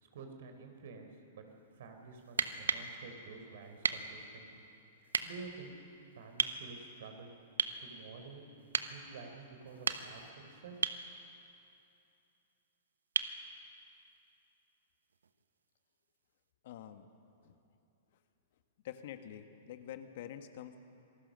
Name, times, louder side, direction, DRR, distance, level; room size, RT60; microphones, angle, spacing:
voice 1, 0.0-1.4 1.8-4.6 5.0-5.7 6.2-7.3 7.8-10.8, right 4 dB, 65° right, 5 dB, 3.9 m, -50 dB
sound 1, 2.3-2.9 3.8-4.1 5.1-5.3 6.4-6.6 7.6-7.8 8.7-8.9 9.7-10.3 10.8-11.0 13.2-13.4 15.2-15.3, right 6 dB, 80° right, 1.0 m, -33 dB
voice 2, 16.6-17.1 17.4-17.6 18.8-20.8, left 10 dB, 60° left, 8 dB, 1.5 m, -47 dB
26.5 x 19.5 x 6.4 m, 2.7 s
hypercardioid pair, 110°, 0 cm